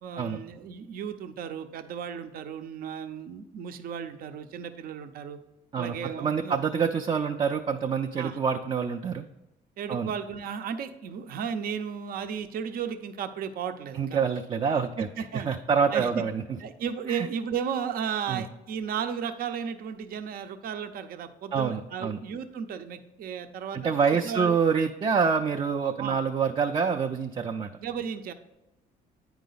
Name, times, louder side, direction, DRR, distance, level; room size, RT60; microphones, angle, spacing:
voice 1, 0.0-5.4 5.8-6.6 8.2-8.4 9.8-14.2 15.0-15.5 15.9-16.2 16.6-23.9 24.2-24.6 26.0-26.2 27.8-28.3, right 7 dB, 60° right, 8 dB, 0.7 m, -34 dB
voice 2, 5.7-9.3 9.9-10.1 13.9-15.1 15.3-16.6 17.1-17.3 18.3-18.4 21.5-22.2 23.7-27.7, right 6 dB, 30° right, 3 dB, 0.5 m, -26 dB
9.2 x 4.7 x 4.0 m, 0.98 s
cardioid pair, 110°, 17 cm